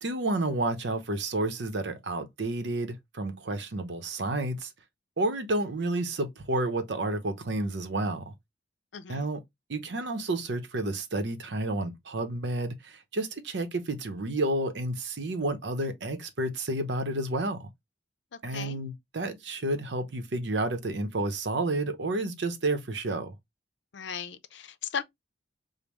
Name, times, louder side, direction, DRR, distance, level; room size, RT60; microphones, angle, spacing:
voice 1, 0.0-4.7 5.2-8.3 9.1-9.4 9.7-17.7 18.4-23.4, right 2 dB, 70° right, 0.7 m, -30 dB
voice 2, 8.9-9.3 18.3-18.8 23.9-25.0, left 7 dB, 80° left, 0.5 m, -37 dB
5.2 x 2.1 x 3.0 m
head